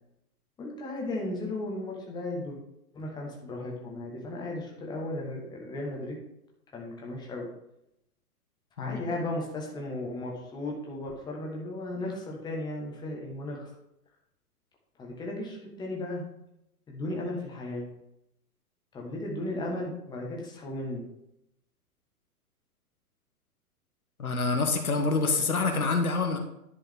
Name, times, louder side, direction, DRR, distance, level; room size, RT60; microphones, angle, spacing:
voice 1, 0.6-2.6 2.9-6.2 6.7-7.5 8.8-13.7 15.0-16.2 16.9-17.9 18.9-21.0, left 1 dB, 10° left, -2 dB, 1.4 m, -35 dB
voice 2, 24.2-26.4, left 3 dB, 70° left, 4 dB, 1.4 m, -26 dB
10.5 x 5.4 x 3.6 m, 0.81 s
figure-of-eight pair, 115°, 45 cm